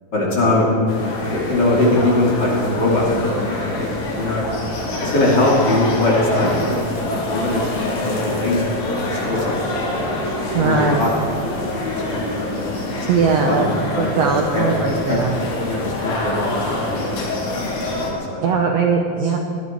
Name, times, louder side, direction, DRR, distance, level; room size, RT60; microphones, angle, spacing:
voice 1, 0.1-0.7 1.2-4.5 5.0-6.8 7.1-7.7 8.0-9.6 10.5-11.1 11.5-12.3 12.9-13.1 13.4-14.3 14.5-14.7 15.1-15.2 15.6-16.9 17.9-18.4, left 2 dB, 30° left, -4 dB, 3.1 m, -21 dB
sound 1, 0.9-18.1, left 2 dB, 75° left, 4.4 m, -25 dB
voice 2, 10.5-11.0 13.1-13.7 14.0-15.4 18.4-19.4, right 5 dB, 90° right, 2 dB, 1.4 m, -19 dB
19.0 x 13.0 x 4.6 m, 2.6 s
omnidirectional pair, 4.3 m